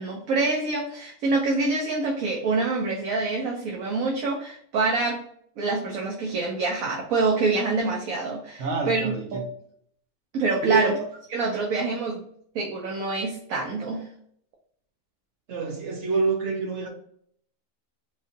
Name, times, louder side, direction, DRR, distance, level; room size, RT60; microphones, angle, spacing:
voice 1, 0.0-5.2 5.6-9.4 10.3-10.9 11.3-12.2 12.5-14.1, right 3 dB, 85° right, -1 dB, 1.2 m, -26 dB
voice 2, 8.6-9.4 10.6-11.0 15.5-16.9, right 4 dB, 60° right, 2 dB, 1.2 m, -27 dB
3.7 x 2.7 x 3.8 m, 0.64 s
omnidirectional pair, 1.4 m